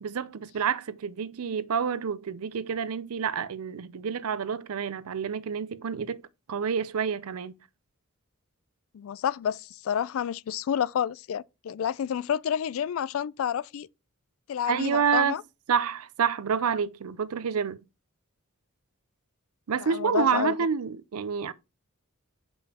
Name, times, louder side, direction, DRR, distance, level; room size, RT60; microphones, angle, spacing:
voice 1, 0.0-6.2 6.5-7.6 14.7-15.4 15.7-17.8 19.7-21.5, right 6 dB, 85° right, 0.5 m, -28 dB
voice 2, 8.9-13.9 14.5-15.4 19.8-20.6, left 8 dB, 70° left, 0.3 m, -29 dB
7.0 x 5.3 x 2.9 m
head